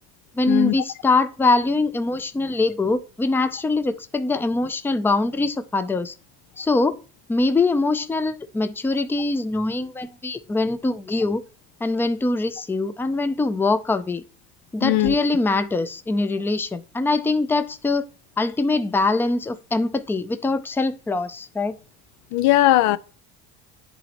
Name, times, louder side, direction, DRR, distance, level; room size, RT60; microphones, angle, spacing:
voice 1, 0.4-6.1 6.6-7.0 7.3-11.4 11.8-14.2 14.7-18.1 18.4-21.7, left 3 dB, 10° left, 0.4 m, -23 dB
voice 2, 14.8-15.2 22.3-23.0, left 15 dB, 80° left, 0.5 m, -18 dB
11.0 x 4.0 x 2.9 m
cardioid pair, 105°, 29 cm